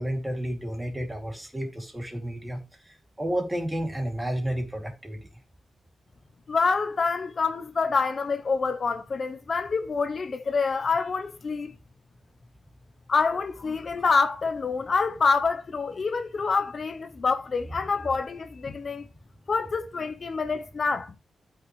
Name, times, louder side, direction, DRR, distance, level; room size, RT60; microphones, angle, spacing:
voice 1, 0.0-2.6 2.9-5.3, equal, 10° right, 2.3 m, -31 dB
voice 2, 6.5-11.7 13.1-19.0 19.5-21.1, left 4 dB, 40° left, 0.6 m, -26 dB
12.5 x 5.9 x 3.1 m
wide cardioid pair, 145°, 0 cm